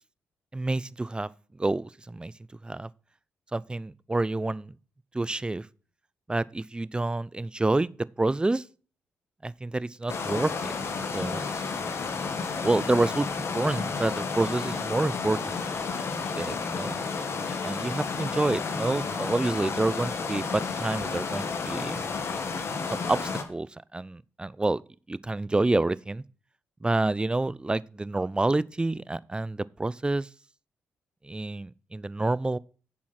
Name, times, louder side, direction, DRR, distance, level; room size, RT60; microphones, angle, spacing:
voice 1, 0.5-1.3 1.6-2.3 2.6-2.9 3.5-4.7 5.1-5.7 6.3-8.6 9.4-10.7 11.1-11.5 12.6-15.5 16.2-17.0 17.6-22.1 22.9-23.7 23.9-24.8 25.1-26.2 26.8-30.3 31.2-32.6, right 2 dB, 15° right, 0.6 m, -28 dB
sound 1, 10.1-23.4, left 4 dB, 55° left, 2.3 m, -31 dB
9.8 x 7.0 x 5.9 m
hypercardioid pair, 45°, 5 cm